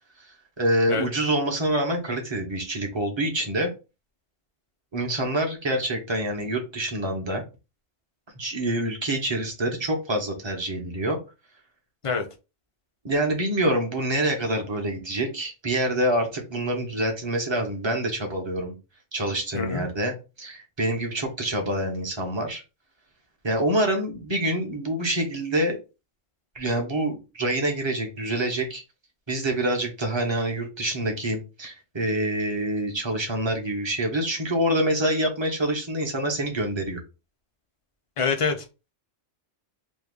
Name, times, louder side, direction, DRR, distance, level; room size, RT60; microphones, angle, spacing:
voice 1, 0.6-3.7 4.9-7.4 8.4-11.2 13.0-18.7 19.1-22.6 23.4-25.8 26.5-28.8 29.3-37.0, right 1 dB, 25° right, 2 dB, 0.8 m, -26 dB
voice 2, 19.5-19.8 38.2-38.6, left 5 dB, 40° left, 4 dB, 0.4 m, -25 dB
3.1 x 2.3 x 3.6 m, 0.29 s
omnidirectional pair, 1.2 m